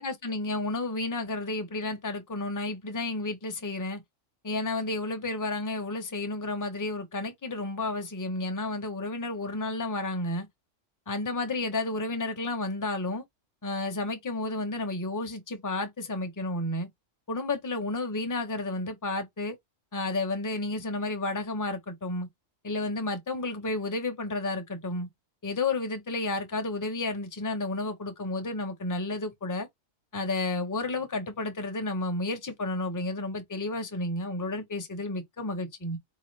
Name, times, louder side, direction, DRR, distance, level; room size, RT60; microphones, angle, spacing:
voice 1, 0.0-4.0 4.4-10.5 11.1-13.2 13.6-16.9 17.3-19.5 19.9-22.3 22.6-25.1 25.4-29.7 30.1-36.0, left 2 dB, 20° left, 0.7 m, -31 dB
4.7 x 2.9 x 3.2 m
omnidirectional pair, 1.4 m